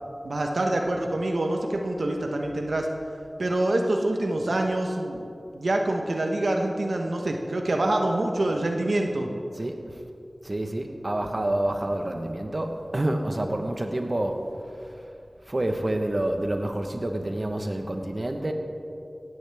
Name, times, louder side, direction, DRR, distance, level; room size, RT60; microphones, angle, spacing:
voice 1, 0.2-2.9 3.4-5.3 5.5-9.3, right 1 dB, 85° right, 2 dB, 1.1 m, -26 dB
voice 2, 10.4-14.4 15.5-18.5, right 1 dB, 45° right, 4 dB, 1.2 m, -28 dB
17.5 x 14.5 x 3.6 m, 2.6 s
wide cardioid pair, 45°, 0 cm